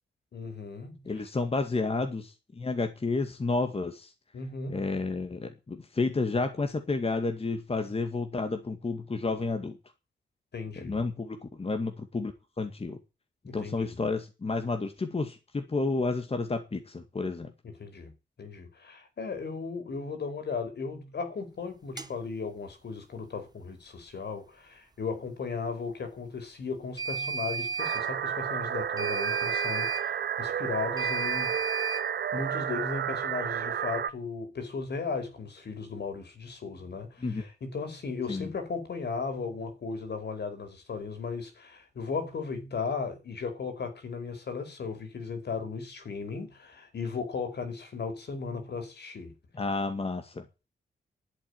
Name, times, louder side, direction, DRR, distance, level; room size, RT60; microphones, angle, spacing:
voice 1, 0.3-1.3 4.3-5.0 10.5-11.0 13.5-14.0 17.6-18.1 18.4-31.6 32.3-49.3, left 4 dB, 65° left, 5.1 m, -36 dB
voice 2, 1.1-4.1 4.7-9.8 10.8-13.0 13.5-17.5 37.2-37.5 38.3-38.5 49.5-50.5, left 3 dB, 30° left, 2.2 m, -31 dB
sound 1, 22.0-22.1 27.0-28.1 29.0-30.1 31.0-32.1, right 5 dB, 20° right, 1.1 m, -33 dB
sound 2, 27.8-34.1, right 8 dB, 65° right, 1.0 m, -31 dB
11.5 x 8.2 x 9.7 m
cardioid pair, 95°, 19 cm